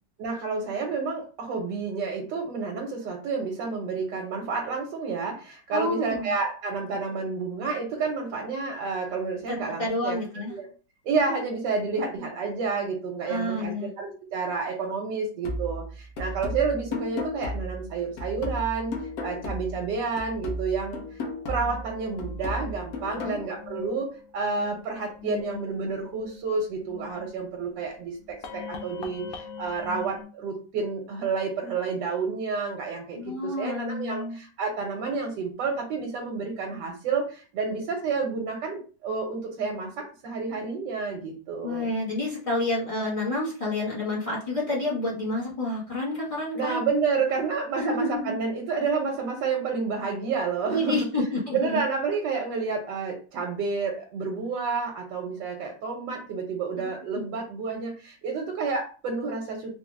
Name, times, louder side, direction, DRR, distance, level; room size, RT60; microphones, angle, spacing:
voice 1, 0.2-10.7 11.0-18.9 19.2-21.2 21.5-24.1 24.3-41.9 46.5-51.0 51.5-59.7, right 4 dB, 75° right, 2 dB, 1.3 m, -30 dB
voice 2, 5.7-6.3 9.5-10.5 13.3-13.9 23.1-23.4 33.1-34.4 41.6-46.8 47.8-48.3 50.7-51.8, left 2 dB, 40° left, -6 dB, 0.4 m, -29 dB
sound 1, 15.4-19.9 20.2-23.4, left 1 dB, 60° left, 1.1 m, -34 dB
sound 2, 21.6-30.2, left 5 dB, 80° left, 0.7 m, -42 dB
3.7 x 2.0 x 3.1 m, 0.38 s
omnidirectional pair, 2.0 m